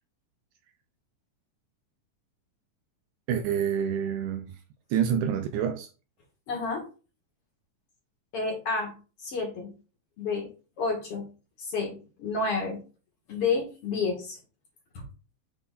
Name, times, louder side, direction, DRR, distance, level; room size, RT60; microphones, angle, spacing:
voice 1, 3.3-4.6 4.9-5.9, right 8 dB, 80° right, 1.8 m, -27 dB
voice 2, 6.5-6.8 8.3-8.9 9.2-9.7 10.2-10.5 10.8-11.3 11.6-12.8 13.3-14.4 14.9-15.0, left 4 dB, 50° left, 2.2 m, -30 dB
8.3 x 3.9 x 3.8 m
omnidirectional pair, 3.8 m